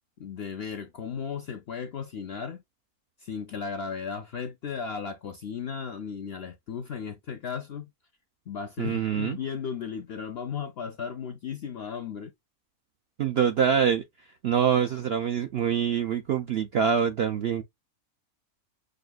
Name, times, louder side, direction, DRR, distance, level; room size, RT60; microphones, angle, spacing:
voice 1, 0.2-2.6 3.2-7.9 8.5-12.3, left 6 dB, 65° left, 0.6 m, -35 dB
voice 2, 8.8-9.4 13.2-14.0 14.4-17.6, right 8 dB, 70° right, 0.6 m, -25 dB
6.4 x 2.5 x 2.3 m
omnidirectional pair, 1.6 m